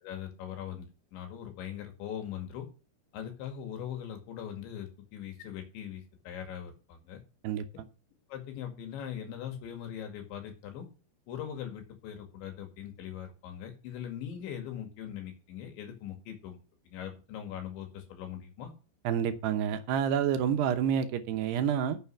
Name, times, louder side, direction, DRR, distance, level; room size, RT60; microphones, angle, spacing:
voice 1, 0.0-2.7 3.1-7.2 8.3-10.9 11.3-16.6 16.9-18.7, left 9 dB, 80° left, 4 dB, 4.4 m, -41 dB
voice 2, 19.1-22.0, right 8 dB, 75° right, 9 dB, 2.9 m, -28 dB
9.5 x 7.4 x 5.7 m, 0.33 s
omnidirectional pair, 5.3 m